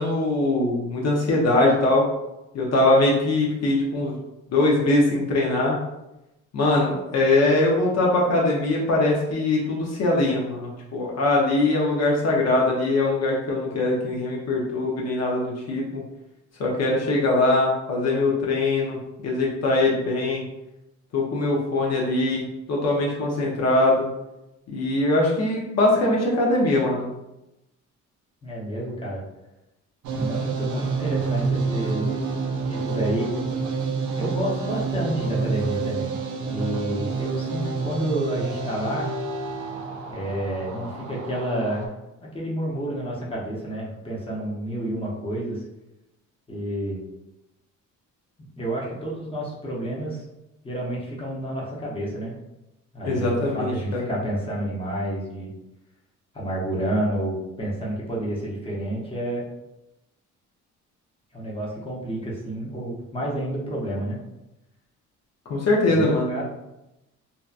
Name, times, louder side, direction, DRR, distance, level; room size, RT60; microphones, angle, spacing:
voice 1, 0.0-2.0 2.5-4.1 4.5-5.8 6.5-16.0 16.6-19.0 19.2-20.4 21.1-22.4 22.7-24.1 24.7-27.1 53.0-54.0 65.5-66.4, left 2 dB, 60° left, -3 dB, 0.6 m, -22 dB
voice 2, 28.4-29.2 30.1-32.1 32.7-33.3 34.1-36.2 36.5-39.1 40.1-41.9 42.3-45.6 46.5-47.0 48.6-50.2 50.6-52.3 52.9-55.5 56.3-59.4 61.3-64.2 65.9-66.4, right 1 dB, 20° left, -4 dB, 0.8 m, -29 dB
sound 1, 30.0-41.9, right 4 dB, 75° right, 0.5 m, -28 dB
2.7 x 2.3 x 2.4 m, 0.93 s
cardioid pair, 90°, 30 cm